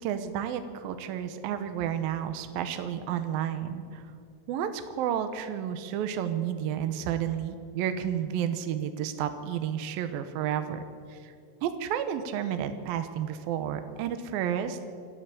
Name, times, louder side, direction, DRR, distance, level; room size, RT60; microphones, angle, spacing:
voice 1, 0.0-4.0 4.5-10.8 11.1-11.3 11.6-14.8, right 9 dB, 70° right, 9 dB, 2.5 m, -31 dB
27.0 x 12.5 x 8.5 m, 2.3 s
omnidirectional pair, 4.7 m